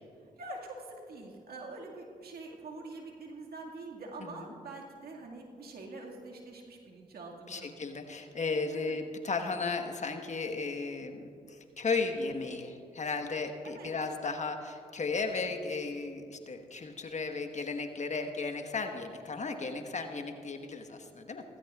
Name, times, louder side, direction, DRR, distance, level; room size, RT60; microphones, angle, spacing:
voice 1, 0.4-7.7 8.7-9.0 13.8-13.9, right 2 dB, 70° right, -1 dB, 2.0 m, -45 dB
voice 2, 7.5-21.4, left 4 dB, 45° left, 5 dB, 1.3 m, -35 dB
16.5 x 15.5 x 2.4 m, 2.3 s
supercardioid pair, 45°, 17 cm